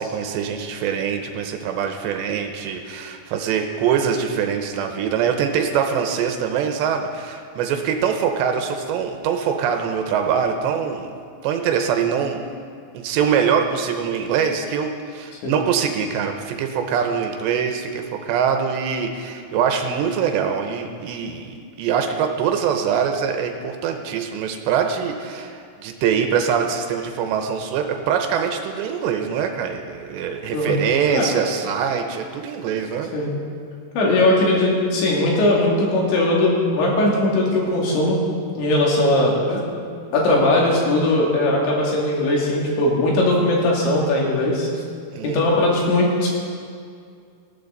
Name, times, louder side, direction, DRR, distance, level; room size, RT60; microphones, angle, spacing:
voice 1, 0.0-11.1 11.4-12.4 12.9-33.1 45.1-45.4, right 7 dB, 80° right, 5 dB, 3.0 m, -23 dB
voice 2, 33.9-38.2 38.6-39.6 40.1-44.7 45.2-46.3, left 1 dB, 80° left, -3 dB, 4.7 m, -19 dB
19.0 x 14.5 x 4.0 m, 2.3 s
omnidirectional pair, 5.2 m